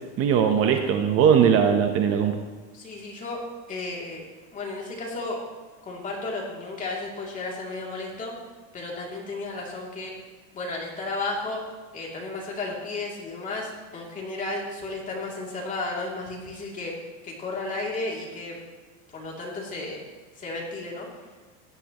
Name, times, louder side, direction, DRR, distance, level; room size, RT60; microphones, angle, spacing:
voice 1, 0.2-2.4, right 8 dB, 40° right, 5 dB, 1.0 m, -20 dB
voice 2, 2.7-3.4 3.7-4.2 4.5-5.4 5.8-8.3 8.7-10.1 10.5-11.6 11.9-16.9 17.2-18.6 19.1-20.0 20.4-21.1, left 2 dB, 25° left, -3 dB, 2.9 m, -33 dB
16.5 x 10.5 x 3.1 m, 1.3 s
cardioid pair, 150°, 34 cm